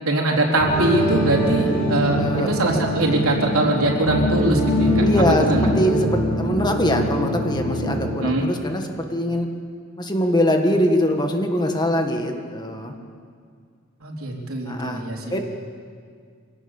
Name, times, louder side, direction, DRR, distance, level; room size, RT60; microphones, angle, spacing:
voice 1, 0.0-5.1 5.4-5.7 8.2-8.5 14.0-15.3, right 2 dB, 85° right, 0 dB, 3.7 m, -22 dB
sound 1, 0.6-8.2, equal, 70° left, 7.0 m, -23 dB
voice 2, 2.1-2.5 5.0-9.5 10.0-12.9 14.7-15.0 15.3-15.4, equal, 20° left, 4 dB, 1.7 m, -22 dB
24.5 x 18.0 x 7.2 m, 2.1 s
head